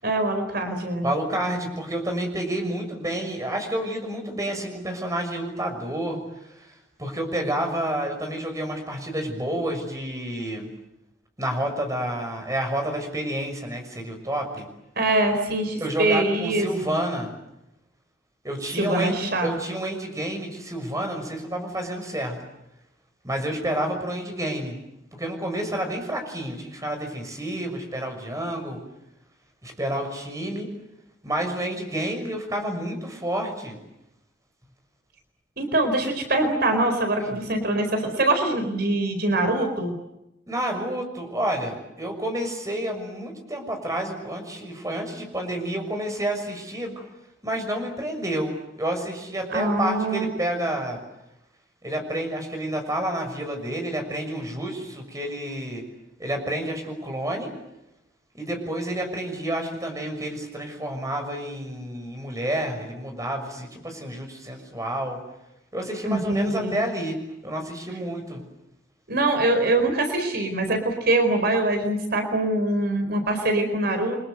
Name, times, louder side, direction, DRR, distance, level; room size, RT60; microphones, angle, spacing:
voice 1, 0.0-1.1 15.0-16.7 18.7-19.5 35.6-39.9 49.5-50.3 66.1-66.8 69.1-74.2, right 2 dB, 55° right, 6 dB, 4.4 m, -23 dB
voice 2, 1.0-10.7 11.4-14.7 15.8-17.3 18.4-22.4 23.2-24.8 25.2-28.8 29.6-30.7 31.2-33.8 37.2-37.4 40.5-47.1 47.4-51.0 51.8-55.8 56.2-57.5 58.3-65.2 65.7-68.4, right 1 dB, 15° right, 4 dB, 6.4 m, -29 dB
30.0 x 25.0 x 7.9 m, 0.89 s
head